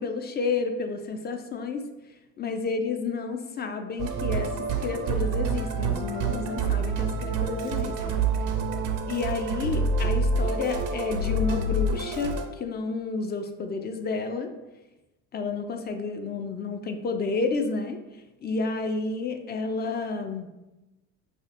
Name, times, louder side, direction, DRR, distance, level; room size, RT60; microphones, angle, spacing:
voice 1, 0.0-1.8 2.4-4.5 4.8-8.1 9.1-14.5 15.3-18.0 18.4-20.5, left 4 dB, 30° left, 6 dB, 0.4 m, -30 dB
Musical instrument, 4.0-12.5, right 3 dB, 65° right, 0.6 m, -27 dB
4.9 x 2.4 x 2.5 m, 1.0 s
supercardioid pair, 75°, 36 cm